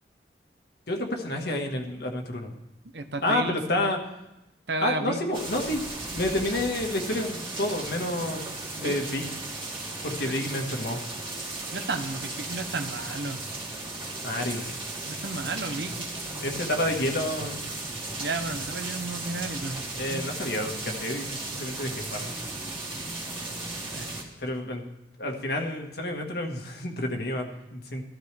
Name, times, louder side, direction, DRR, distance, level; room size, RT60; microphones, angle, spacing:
voice 1, 0.9-2.6 3.2-4.0 4.8-5.8 6.1-8.5 8.8-9.2 10.0-11.0 14.2-14.8 16.4-17.6 20.0-22.3 24.4-24.8 25.2-28.0, left 1 dB, 60° left, 2 dB, 1.6 m, -29 dB
voice 2, 2.9-3.9 4.7-5.4 8.7-9.0 10.3-10.4 11.7-13.4 15.0-16.1 18.2-19.8 20.1-20.2 23.9-24.1, right 3 dB, 70° right, 7 dB, 0.9 m, -33 dB
sound 1, 5.3-24.2, right 2 dB, 30° right, 2.0 m, -36 dB
15.5 x 13.0 x 3.4 m, 0.92 s
head